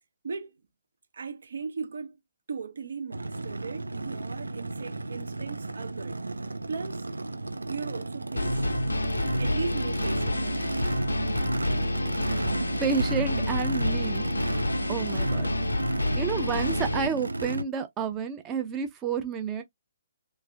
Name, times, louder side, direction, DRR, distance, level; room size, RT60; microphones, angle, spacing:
voice 1, 1.1-2.2 2.5-6.2 6.7-7.1 7.7-8.9 9.4-11.1, right 5 dB, 60° right, 0.8 m, -37 dB
Race car auto racing / Idling / Accelerating revving vroom, 3.1-17.6, right 2 dB, 75° right, 0.4 m, -34 dB
sound 1, 8.4-17.1, left 1 dB, 75° left, 0.6 m, -28 dB
voice 2, 12.8-14.6 14.9-15.5 16.2-19.6, right 6 dB, 15° right, 0.6 m, -30 dB
3.2 x 3.2 x 2.3 m
figure-of-eight pair, 130°, 0 cm